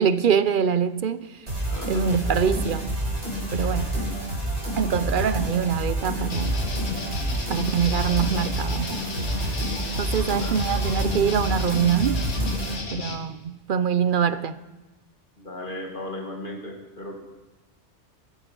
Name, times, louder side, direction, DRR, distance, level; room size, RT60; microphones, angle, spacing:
voice 1, 0.0-1.5 1.9-2.9 3.5-4.0 4.8-6.6 7.5-9.0 10.0-12.3 12.9-14.6, right 7 dB, 55° right, 0.7 m, -24 dB
sound 1, 1.5-12.8, right 1 dB, 75° right, 5.5 m, -28 dB
voice 2, 1.7-2.2 3.7-4.1 10.4-10.5 15.4-17.2, left 1 dB, 45° left, 2.3 m, -36 dB
sound 2, 6.3-13.2, left 3 dB, 85° left, 1.8 m, -34 dB
13.5 x 13.0 x 5.3 m
omnidirectional pair, 1.2 m